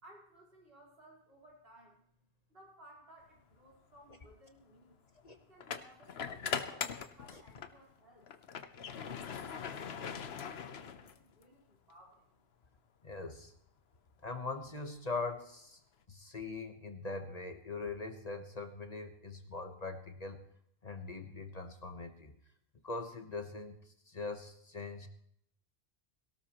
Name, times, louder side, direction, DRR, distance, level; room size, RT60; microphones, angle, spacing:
voice 1, 0.0-2.0 2.5-5.0 5.3-8.3 8.7-12.2, equal, 70° right, -3 dB, 4.3 m, -60 dB
sound 1, 3.5-3.7 5.6-7.8 8.2-11.4, left 7 dB, 80° left, 1.1 m, -41 dB
voice 2, 13.0-13.5 14.2-15.8 16.1-20.4 20.8-22.3 22.8-23.8 24.1-25.1, left 3 dB, 40° left, 6 dB, 1.2 m, -41 dB
17.5 x 17.5 x 3.0 m, 0.70 s
omnidirectional pair, 1.0 m